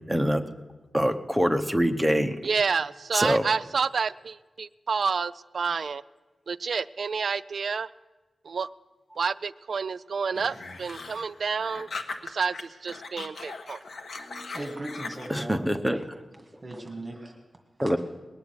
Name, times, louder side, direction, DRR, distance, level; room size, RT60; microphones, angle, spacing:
voice 1, 0.1-0.4 0.9-2.4 3.1-3.4 14.3-14.5 15.3-16.2 17.8-18.0, equal, ahead, 6 dB, 0.9 m, -24 dB
voice 2, 2.4-6.0 6.5-7.9 8.4-8.7 9.2-11.9 12.2-13.8, right 5 dB, 65° right, 14 dB, 0.4 m, -29 dB
sound 1, 10.3-12.6 12.9-15.4, left 3 dB, 70° left, 1.3 m, -39 dB
voice 3, 14.5-15.7 16.6-17.4 17.8-17.9, right 1 dB, 30° right, 1 dB, 1.9 m, -37 dB
20.5 x 6.9 x 9.6 m, 1.3 s
wide cardioid pair, 135°, 0 cm